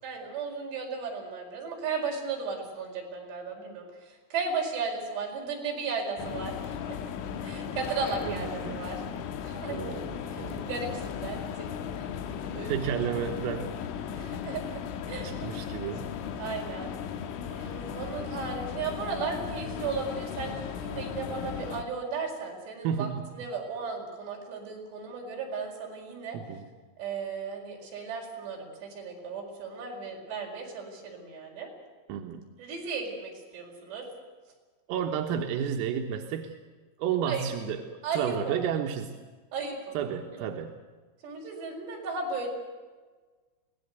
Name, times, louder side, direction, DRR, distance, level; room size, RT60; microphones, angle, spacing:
voice 1, 0.0-7.0 7.4-9.0 9.4-10.0 10.3-11.7 12.0-13.0 14.1-14.8 15.1-15.5 16.4-16.9 17.4-26.4 27.0-31.7 32.6-34.1 37.3-37.5 38.0-38.6 39.5-40.5 41.2-42.5, right 4 dB, 60° right, 0 dB, 6.9 m, -35 dB
sound 1, 6.2-21.8, left 8 dB, 80° left, 3.8 m, -36 dB
voice 2, 8.3-8.8 9.7-10.7 12.7-13.7 15.2-16.1 22.8-23.3 26.3-26.7 32.1-32.4 34.9-36.6 37.0-39.2 40.0-40.7, right 8 dB, 90° right, 3 dB, 3.9 m, -32 dB
24.0 x 18.5 x 8.2 m, 1.4 s
omnidirectional pair, 5.8 m